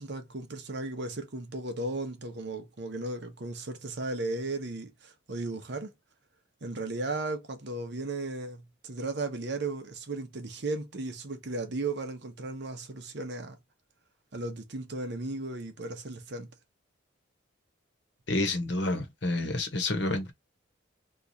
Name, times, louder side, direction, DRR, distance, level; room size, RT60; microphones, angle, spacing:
voice 1, 0.0-5.9 6.6-13.6 14.3-16.5, right 2 dB, 55° right, 0.8 m, -35 dB
voice 2, 18.3-20.3, left 2 dB, 55° left, 1.0 m, -29 dB
3.0 x 2.4 x 3.9 m
head